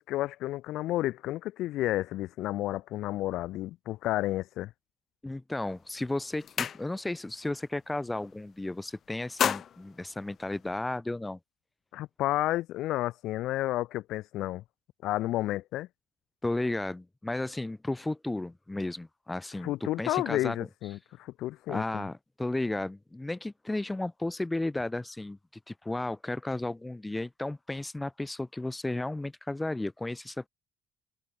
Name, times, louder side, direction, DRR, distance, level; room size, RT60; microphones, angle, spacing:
voice 1, 0.0-4.7 11.9-14.6 15.0-15.9 19.6-22.1, left 15 dB, 70° left, 1.8 m, -31 dB
voice 2, 5.2-11.4 16.4-20.7 21.7-25.4 25.7-30.5, left 2 dB, 10° left, 1.1 m, -34 dB
sound 1, 5.6-5.8 6.1-7.3 7.6-7.9 8.2-8.8 9.1-11.0, left 8 dB, 50° left, 3.9 m, -33 dB
supercardioid pair, 90°, 0 cm